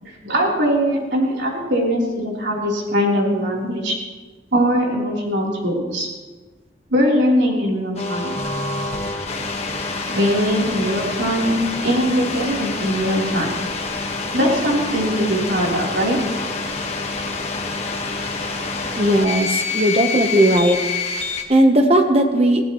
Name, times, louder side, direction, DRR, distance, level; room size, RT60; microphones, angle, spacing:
voice 1, 0.0-4.0 4.5-6.1 6.9-8.3 10.1-13.5 14.3-16.2, equal, 75° right, -3 dB, 3.7 m, -21 dB
sound 1, 8.0-21.4, left 3 dB, 35° left, 1.5 m, -27 dB
voice 2, 19.0-20.8 21.5-22.6, right 1 dB, 35° right, 5 dB, 1.0 m, -16 dB
21.0 x 15.5 x 3.1 m, 1.3 s
head